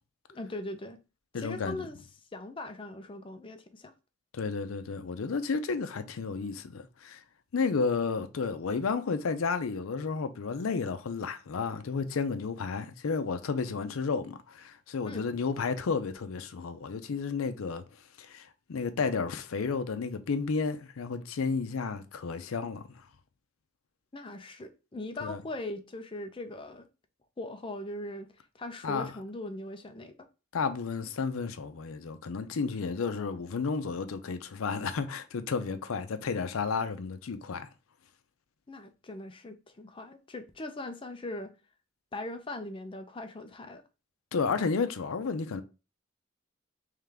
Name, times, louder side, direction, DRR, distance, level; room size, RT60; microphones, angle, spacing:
voice 1, 0.3-1.0 1.3-2.0 2.3-3.9 15.0-15.3 24.1-26.9 27.4-28.3 28.5-30.1 38.7-41.5 42.1-43.8, left 2 dB, 25° left, 0.5 m, -40 dB
voice 2, 1.3-1.8 4.3-7.2 7.5-17.8 18.2-23.0 25.2-25.4 28.8-29.1 30.5-37.7 44.3-45.6, left 5 dB, 90° left, 0.5 m, -32 dB
3.7 x 3.2 x 3.4 m
head